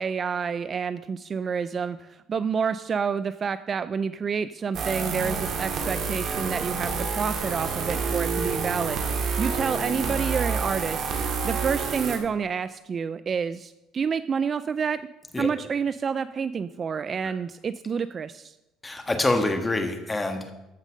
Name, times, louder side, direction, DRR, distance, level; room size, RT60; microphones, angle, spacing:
voice 1, 0.0-15.0 15.4-18.6, right 6 dB, 30° right, 14 dB, 0.3 m, -29 dB
sound 1, 4.7-12.2, right 5 dB, 45° right, 2.0 m, -28 dB
voice 2, 18.8-20.5, left 2 dB, 15° left, 6 dB, 1.4 m, -26 dB
14.0 x 5.3 x 6.3 m, 0.95 s
cardioid pair, 135°, 0 cm